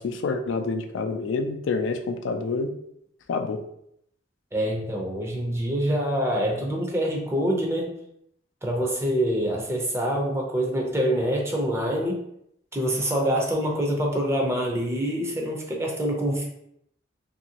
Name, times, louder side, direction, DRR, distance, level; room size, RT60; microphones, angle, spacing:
voice 1, 0.0-2.7 3.3-3.6, left 4 dB, 80° left, 6 dB, 0.4 m, -27 dB
voice 2, 4.5-8.0 8.6-12.2 12.7-16.4, equal, 15° right, -1 dB, 0.6 m, -25 dB
2.9 x 2.7 x 2.8 m, 0.73 s
head